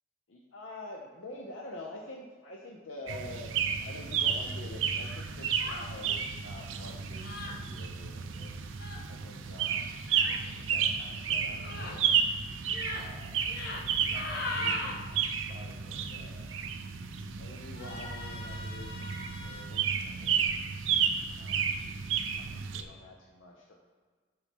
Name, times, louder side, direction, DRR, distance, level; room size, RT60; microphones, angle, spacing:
voice 1, 0.3-8.5 9.1-10.0 10.4-12.2 12.9-13.5 14.0-16.5 17.4-19.2 19.4-20.5 21.3-21.6 22.4-23.7, left 1 dB, 85° left, -1 dB, 0.9 m, -47 dB
sound 1, 3.1-22.8, right 7 dB, 90° right, 0.5 m, -32 dB
sound 2, 5.6-5.9 7.2-7.6 8.7-9.0 10.1-10.4 11.6-12.0 12.6-13.1 13.5-13.8 14.1-15.0 17.7-19.6, left 2 dB, 55° left, 1.0 m, -39 dB
11.5 x 4.5 x 3.6 m, 1.4 s
head